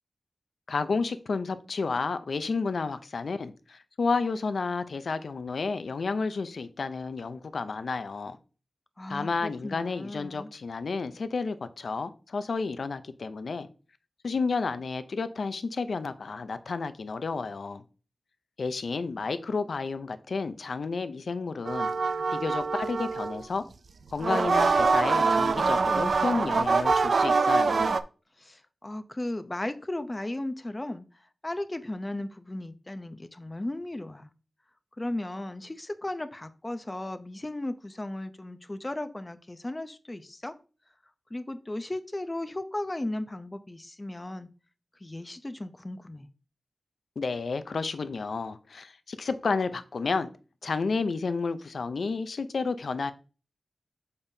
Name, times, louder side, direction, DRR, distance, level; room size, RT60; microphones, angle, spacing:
voice 1, 0.7-8.4 9.1-13.7 14.2-17.8 18.6-21.9 22.3-23.7 24.1-27.9 47.2-50.3 50.6-53.1, left 4 dB, 75° left, 0.5 m, -31 dB
voice 2, 9.0-10.5 28.4-34.3 35.0-40.5 41.3-44.5 45.0-46.3, left 1 dB, 25° left, 0.6 m, -36 dB
sound 1, 21.6-23.4 24.1-28.0, right 4 dB, 75° right, 0.4 m, -24 dB
7.0 x 5.3 x 2.7 m
wide cardioid pair, 85°, 0 cm